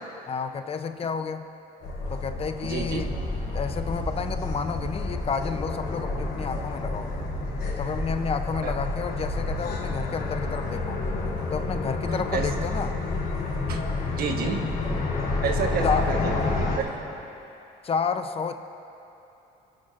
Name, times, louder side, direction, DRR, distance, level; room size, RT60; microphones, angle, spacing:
voice 1, 0.3-1.5 2.1-3.2 3.5-7.1 7.8-11.0 11.5-13.0 15.8-16.1 17.8-18.5, left 6 dB, 35° left, 8 dB, 0.6 m, -30 dB
sound 1, 1.8-16.8, left 3 dB, 65° left, 2.8 m, -30 dB
voice 2, 2.6-3.0 8.6-8.7 12.1-12.5 13.7-13.8 14.2-15.1 15.4-16.9, right 6 dB, 65° right, 4 dB, 1.2 m, -30 dB
sound 2, 2.9-16.5, equal, 5° right, 2.0 m, -39 dB
26.0 x 11.5 x 2.5 m, 2.9 s
cardioid pair, 110°, 17 cm